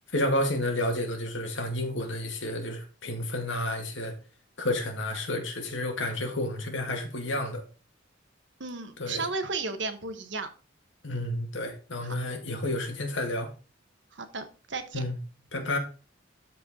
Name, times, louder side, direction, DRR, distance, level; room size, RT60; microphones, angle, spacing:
voice 1, 0.1-4.1 4.6-7.6 9.0-9.2 11.0-13.5 14.9-15.2 15.5-15.8, left 1 dB, 70° left, 2.2 m, -30 dB
voice 2, 8.6-10.5 12.0-12.2 14.1-15.0, right 3 dB, 65° right, 1.3 m, -34 dB
13.0 x 4.8 x 3.8 m
head